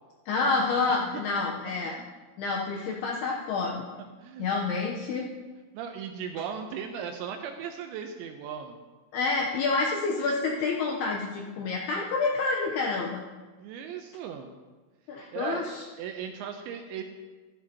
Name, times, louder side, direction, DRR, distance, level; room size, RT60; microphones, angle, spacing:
voice 1, 0.3-2.0 2.4-3.8 4.4-5.3 9.1-13.2 15.1-15.8, left 4 dB, 80° left, -1 dB, 2.3 m, -28 dB
voice 2, 0.9-1.2 1.7-1.8 4.2-4.7 5.7-8.8 13.6-14.5 15.3-17.0, right 7 dB, 80° right, 5 dB, 2.7 m, -37 dB
15.0 x 12.5 x 2.9 m, 1.3 s
omnidirectional pair, 5.7 m